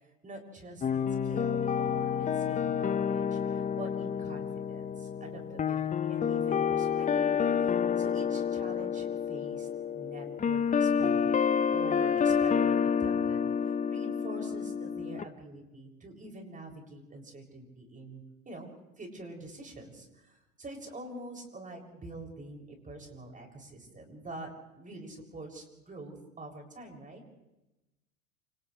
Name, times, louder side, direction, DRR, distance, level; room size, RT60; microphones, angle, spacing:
voice 1, 0.2-9.7 9.9-11.4 11.7-18.7 19.0-24.5 24.7-27.2, right 2 dB, 20° right, 1 dB, 7.3 m, -46 dB
sound 1, 0.8-15.2, left 7 dB, 15° left, 0.8 m, -29 dB
29.0 x 28.0 x 3.4 m, 0.98 s
hypercardioid pair, 95°, 44 cm